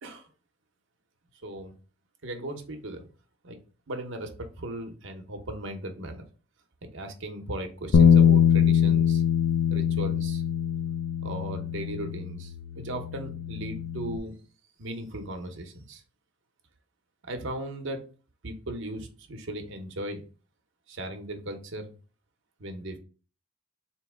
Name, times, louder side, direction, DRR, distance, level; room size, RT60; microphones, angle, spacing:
voice 1, 1.4-1.7 2.2-3.1 3.4-3.6 3.9-6.2 6.8-9.2 9.7-10.4 11.2-14.4 14.8-16.0 17.3-18.0 18.4-20.2 20.9-21.9 22.6-23.0, right 1 dB, 60° right, 5 dB, 0.8 m, -37 dB
Bass guitar, 7.9-14.2, left 8 dB, 65° left, 0.4 m, -23 dB
4.0 x 2.9 x 3.5 m, 0.36 s
head